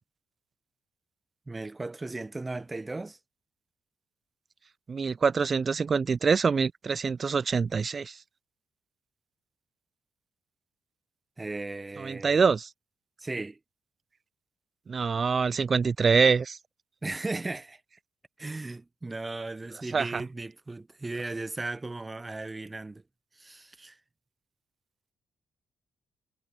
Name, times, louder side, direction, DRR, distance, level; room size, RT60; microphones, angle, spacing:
voice 1, 1.5-3.2 11.4-12.4 13.2-13.6 17.0-17.8 18.4-23.0 23.4-24.0, right 2 dB, 20° right, 4.3 m, -36 dB
voice 2, 4.9-8.2 12.0-12.7 14.9-16.6 19.9-20.2, right 5 dB, 40° right, 0.4 m, -25 dB
cardioid pair, 90°, 0 cm